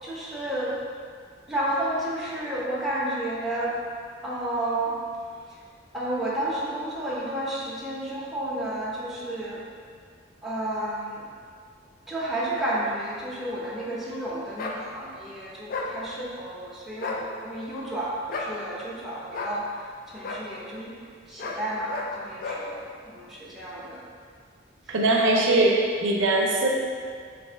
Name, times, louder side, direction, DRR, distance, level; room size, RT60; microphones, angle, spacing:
voice 1, 0.0-0.8 1.5-3.8 4.2-5.0 5.5-5.6 5.9-9.6 10.4-11.2 12.1-21.0 21.3-24.0 24.9-25.0, right 1 dB, ahead, -8 dB, 0.6 m, -31 dB
Dog bark, 14.6-14.8 15.7-15.9 16.9-17.2 18.3-18.5 19.3-19.6 20.2-20.4 21.4-21.6 21.9-22.1 22.4-22.6, left 3 dB, 50° left, 0.3 m, -32 dB
voice 2, 24.9-26.7, right 2 dB, 80° right, -1 dB, 0.5 m, -21 dB
3.1 x 2.5 x 4.3 m, 2.1 s
head